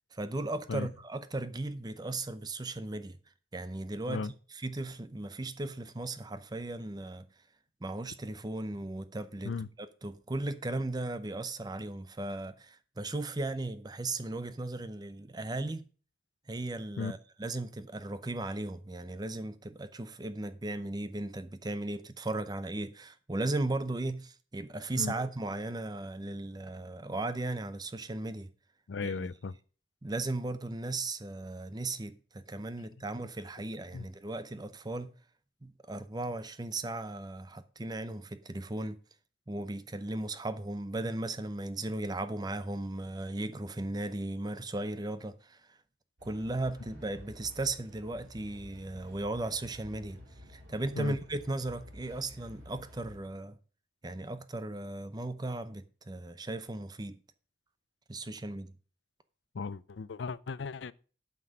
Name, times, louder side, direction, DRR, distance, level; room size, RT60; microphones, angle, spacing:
voice 1, 0.1-3.2 3.5-7.2 7.8-15.8 16.5-28.5 29.0-29.3 30.0-35.1 35.6-39.0 39.5-45.8 46.2-50.2 50.5-53.6 54.0-57.2 58.1-58.7, right 2 dB, 20° right, 0.6 m, -36 dB
voice 2, 28.9-29.5 33.9-34.0 51.0-51.1 59.5-60.9, left 4 dB, 75° left, 0.5 m, -36 dB
sound 1, 46.2-53.2, left 1 dB, 75° right, 4.4 m, -51 dB
9.1 x 5.9 x 6.3 m
head